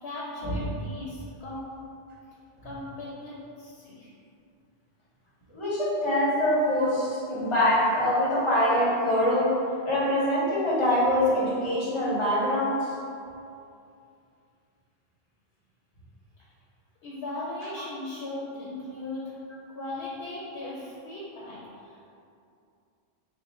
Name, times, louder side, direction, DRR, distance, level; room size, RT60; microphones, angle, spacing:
voice 1, 0.0-1.7 2.6-4.1 17.0-19.3 19.7-22.0, left 2 dB, 80° left, -6 dB, 0.9 m, -37 dB
voice 2, 5.5-9.5 9.8-13.0, left 1 dB, 30° left, -8 dB, 0.7 m, -24 dB
3.1 x 2.1 x 4.1 m, 2.5 s
omnidirectional pair, 1.1 m